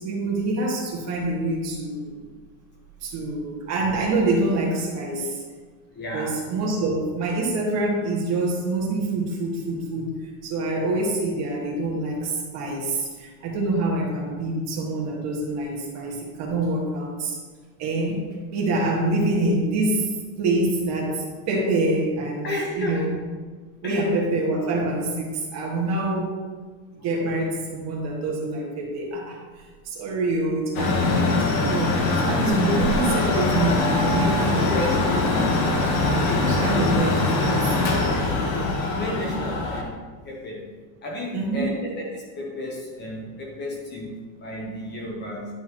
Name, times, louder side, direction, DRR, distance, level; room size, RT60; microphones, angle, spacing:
voice 1, 0.0-2.2 3.0-5.4 6.1-10.2 10.4-17.4 17.8-20.1 20.4-22.5 22.7-23.1 23.8-26.3 26.9-35.2 36.0-37.6 41.3-41.8, right 2 dB, 35° right, -2 dB, 1.8 m, -26 dB
voice 2, 5.9-6.3 22.4-23.0 23.8-24.1 34.6-35.5 36.1-36.8 37.8-39.9 40.2-40.6 41.0-45.5, left 1 dB, 25° left, -2 dB, 1.1 m, -32 dB
Mechanical fan, 30.7-39.8, left 2 dB, 60° left, 1.5 m, -22 dB
11.0 x 5.5 x 3.0 m, 1.5 s
supercardioid pair, 155°, 45 cm